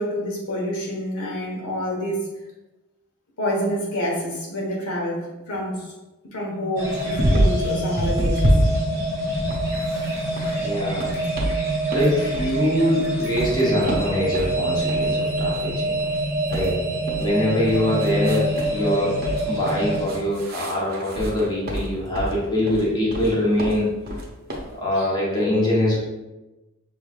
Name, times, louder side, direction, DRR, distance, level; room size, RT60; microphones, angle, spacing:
voice 1, 0.0-2.3 3.4-5.9 6.3-8.5 19.5-19.6 24.9-25.1, equal, 85° left, -3 dB, 1.3 m, -27 dB
sound 1, 6.8-20.1, right 1 dB, 15° right, 1.0 m, -26 dB
sound 2, 7.0-7.7 8.0-10.6 10.9-11.6 11.9-12.6 12.9-14.6 14.9-15.1 15.4-15.6 16.0-17.3 17.7-18.9 19.2-22.4 22.7-23.3 23.6-24.7, equal, 40° right, 0.8 m, -26 dB
voice 2, 10.6-11.1 11.7-15.9 16.5-16.7 17.2-19.2 19.4-23.9 24.7-26.0, left 1 dB, 20° left, -6 dB, 1.0 m, -23 dB
5.9 x 3.1 x 2.4 m, 1.0 s
head